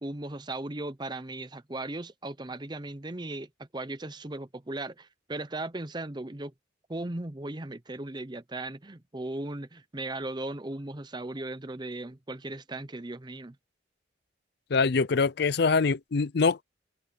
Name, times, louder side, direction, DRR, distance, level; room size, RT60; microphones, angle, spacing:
voice 1, 0.0-6.5 6.9-13.6, right 2 dB, 20° right, 0.7 m, -37 dB
voice 2, 14.7-16.6, left 4 dB, 55° left, 0.5 m, -24 dB
head